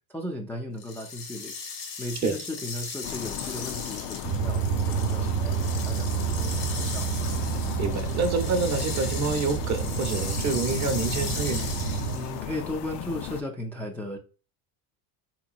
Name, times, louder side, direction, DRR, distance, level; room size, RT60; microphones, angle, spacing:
voice 1, 0.1-1.6 2.0-7.1 12.1-14.2, left 1 dB, 5° left, 0.3 m, -36 dB
sound 1, 0.8-12.4, left 5 dB, 85° left, 1.3 m, -38 dB
sound 2, 3.0-13.4, left 11 dB, 65° left, 0.5 m, -37 dB
sound 3, 4.2-12.2, right 7 dB, 75° right, 0.7 m, -29 dB
voice 2, 7.8-11.7, right 4 dB, 35° right, 0.8 m, -27 dB
3.6 x 2.9 x 2.4 m
supercardioid pair, 95°, 45 cm